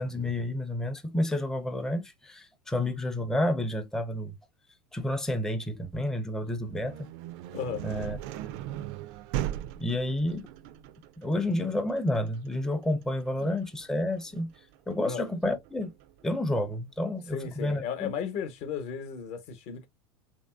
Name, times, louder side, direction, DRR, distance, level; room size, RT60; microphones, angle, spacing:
voice 1, 0.0-4.4 4.9-7.1 7.8-8.2 9.8-10.5 11.2-14.5 14.9-15.9 16.2-18.1, left 1 dB, 5° left, 0.5 m, -30 dB
sound 1, 6.4-16.2, right 13 dB, 55° right, 0.4 m, -39 dB
voice 2, 7.5-7.9 13.4-13.5 15.0-15.2 17.3-19.9, left 7 dB, 50° left, 0.9 m, -35 dB
3.0 x 2.6 x 2.3 m
hypercardioid pair, 95°, 14 cm